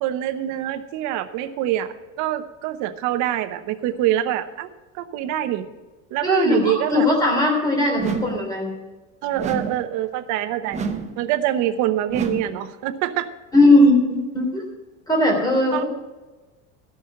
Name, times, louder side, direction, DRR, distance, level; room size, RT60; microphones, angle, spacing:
voice 1, 0.0-4.7 4.9-5.7 6.1-7.1 9.2-10.8 11.2-13.3 15.7-15.8, right 12 dB, 50° right, 9 dB, 0.9 m, -25 dB
voice 2, 6.2-8.7 13.5-14.6 15.1-15.8, left 1 dB, 10° left, 0 dB, 3.2 m, -18 dB
sound 1, 8.0-8.5 9.4-9.9 10.7-11.2 12.1-12.6, right 4 dB, 20° right, 0.8 m, -29 dB
13.0 x 6.3 x 8.4 m, 1.2 s
cardioid pair, 160°, 37 cm